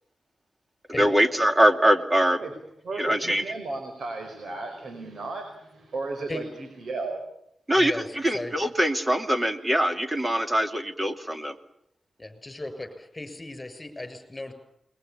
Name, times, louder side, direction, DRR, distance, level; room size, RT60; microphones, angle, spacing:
voice 1, 1.0-2.4 3.0-3.4 7.7-7.9 8.2-11.5, equal, 15° right, 6 dB, 2.8 m, -22 dB
voice 2, 2.8-7.2, right 3 dB, 70° right, 5 dB, 5.3 m, -34 dB
voice 3, 7.8-8.5 12.2-14.5, left 2 dB, 20° left, 9 dB, 7.3 m, -37 dB
28.5 x 22.5 x 7.2 m, 0.75 s
wide cardioid pair, 95°, 0 cm